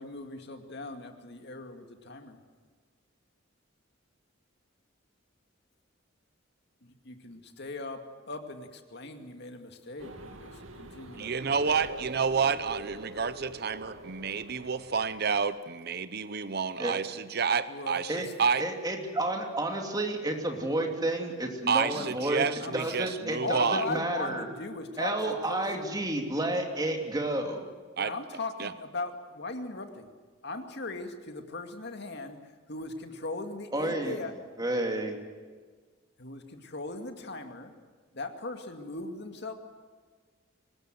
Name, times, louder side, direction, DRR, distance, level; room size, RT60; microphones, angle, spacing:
voice 1, 0.0-2.4 6.8-11.9 17.7-18.3 21.9-22.2 22.6-22.9 23.4-26.0 28.0-30.1 30.4-32.4 32.7-34.3 36.2-37.7 38.1-39.5, left 2 dB, 55° left, 5 dB, 2.3 m, -39 dB
sound 1, 10.0-15.5, right 2 dB, 80° right, 2.2 m, -44 dB
voice 2, 11.1-18.6 21.7-23.8 28.0-28.1 28.6-28.7, right 5 dB, 50° right, 14 dB, 0.7 m, -29 dB
voice 3, 18.6-22.5 22.7-24.5 25.0-27.6 33.7-34.2 34.6-35.2, right 1 dB, 20° right, 2 dB, 2.9 m, -31 dB
24.5 x 20.0 x 7.9 m, 1.5 s
head